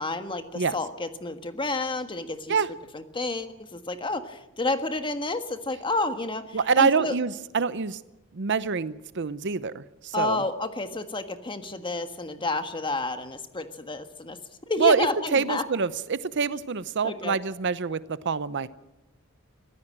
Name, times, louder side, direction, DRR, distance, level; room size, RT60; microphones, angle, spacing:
voice 1, 0.0-2.6 2.9-7.1 10.1-14.4 14.7-15.6 17.0-17.4, left 2 dB, 25° left, 8 dB, 1.5 m, -30 dB
voice 2, 6.5-8.0 8.3-10.4 14.8-18.7, right 5 dB, 55° right, 15 dB, 0.7 m, -26 dB
23.5 x 15.5 x 7.5 m, 0.97 s
head